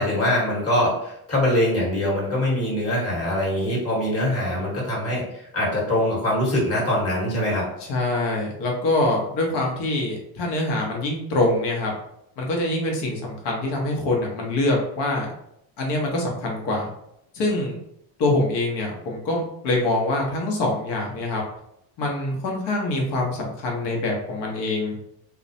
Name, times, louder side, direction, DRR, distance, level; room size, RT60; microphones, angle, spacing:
voice 1, 0.0-7.7, left 1 dB, 30° left, -4 dB, 1.2 m, -23 dB
voice 2, 7.9-11.9 12.4-15.3 15.8-16.9 17.3-17.8 18.2-21.4 22.0-24.9, left 2 dB, 60° left, -1 dB, 0.9 m, -24 dB
2.3 x 2.0 x 2.6 m, 0.76 s
supercardioid pair, 90°, 46 cm